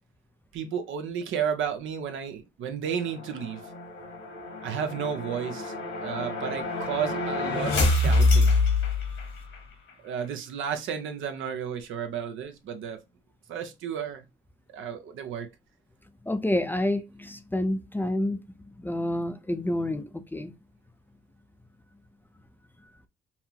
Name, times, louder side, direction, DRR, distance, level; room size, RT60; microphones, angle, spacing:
voice 1, 0.5-3.6 4.6-5.7 6.0-8.6 10.0-13.0 13.5-14.2 14.7-15.5, right 7 dB, 80° right, 0.8 m, -32 dB
sound 1, 2.9-9.6, left 2 dB, 75° left, 1.5 m, -26 dB
voice 2, 16.3-18.4 18.8-20.5, left 1 dB, 10° left, 0.5 m, -28 dB
5.7 x 2.0 x 2.9 m
cardioid pair, 90°, 20 cm